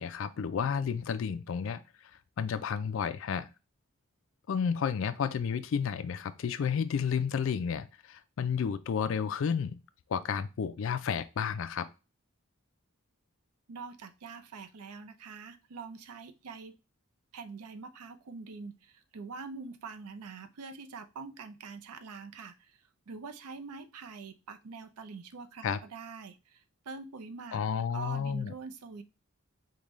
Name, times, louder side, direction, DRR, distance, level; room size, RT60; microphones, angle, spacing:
voice 1, 0.0-1.8 2.4-3.5 4.5-9.8 10.1-11.9 25.6-25.8 27.5-28.5, left 7 dB, 60° left, 0.3 m, -31 dB
voice 2, 13.7-16.7 17.3-27.6 27.9-29.0, right 4 dB, 90° right, 0.5 m, -44 dB
5.1 x 2.2 x 3.0 m
head